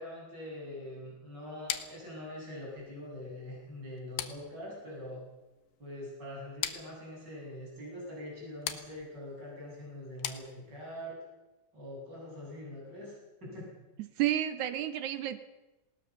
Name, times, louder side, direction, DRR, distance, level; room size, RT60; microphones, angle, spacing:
voice 1, 0.0-5.2 5.8-11.2 11.7-13.7, left 1 dB, 25° right, -3 dB, 8.4 m, -43 dB
sound 1, 1.7-11.0, left 11 dB, 80° left, 3.1 m, -43 dB
voice 2, 14.2-15.4, right 12 dB, 80° right, 12 dB, 1.7 m, -30 dB
20.0 x 18.5 x 6.8 m, 1.1 s
omnidirectional pair, 4.5 m